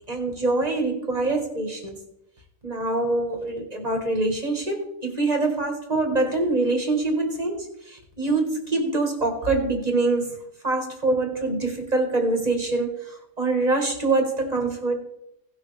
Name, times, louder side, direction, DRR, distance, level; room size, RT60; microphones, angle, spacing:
voice 1, 0.1-2.0 2.6-10.3 10.6-15.0, right 2 dB, 30° right, 3 dB, 1.5 m, -24 dB
16.5 x 6.5 x 3.3 m, 0.82 s
omnidirectional pair, 1.5 m